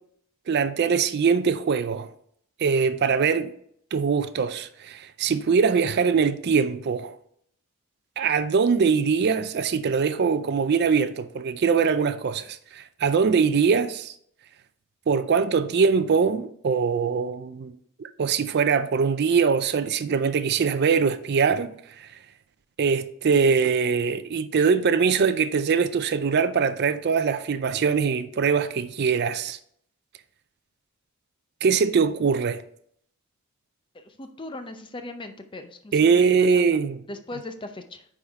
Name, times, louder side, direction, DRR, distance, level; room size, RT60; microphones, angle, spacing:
voice 1, 0.5-2.1 2.6-3.5 3.9-7.1 8.2-14.1 15.1-17.7 18.0-22.1 22.8-29.6 31.6-32.6 35.9-37.0, right 5 dB, 50° right, 0.4 m, -22 dB
voice 2, 33.9-36.6 37.1-38.1, left 2 dB, 25° left, 0.5 m, -39 dB
9.5 x 3.7 x 3.5 m
head